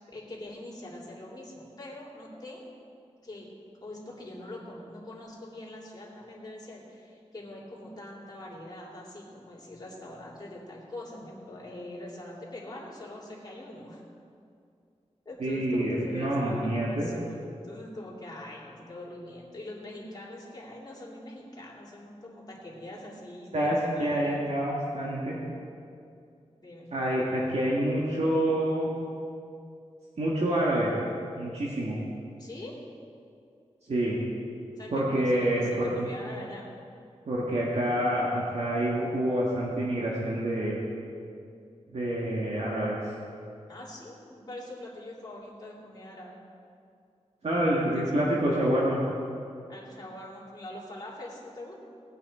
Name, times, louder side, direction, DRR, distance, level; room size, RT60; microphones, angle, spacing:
voice 1, 0.1-2.7 3.2-3.5 3.8-14.0 15.2-24.4 26.6-26.9 32.4-32.8 34.8-36.7 43.7-46.4 49.7-51.8, left 1 dB, 35° left, -5 dB, 3.1 m, -43 dB
voice 2, 15.4-17.1 23.5-25.4 26.9-28.9 30.2-30.9 31.4-32.0 33.9-34.2 34.9-36.1 37.3-40.8 41.9-43.0 47.4-49.0, right 1 dB, 65° right, -5 dB, 1.8 m, -27 dB
18.5 x 8.6 x 4.4 m, 2.4 s
wide cardioid pair, 105°, 12 cm